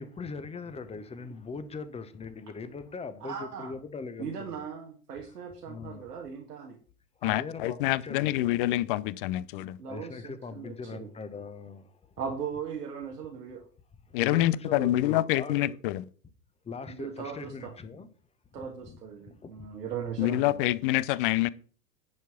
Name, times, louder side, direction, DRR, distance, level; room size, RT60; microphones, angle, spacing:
voice 1, 0.0-4.6 5.2-5.3 5.7-6.1 7.2-8.7 9.9-12.0 14.1-15.8 16.6-18.1 18.6-19.0 19.3-19.7, left 4 dB, 15° left, 0.9 m, -41 dB
voice 2, 3.2-3.7 4.2-6.8 9.8-11.1 12.2-13.6 16.9-17.7 18.5-20.6, right 7 dB, 75° right, 1.7 m, -38 dB
voice 3, 7.2-9.8 14.1-16.0 20.2-21.5, left 15 dB, 35° left, 0.5 m, -26 dB
10.5 x 4.6 x 5.9 m
figure-of-eight pair, 90°, 48 cm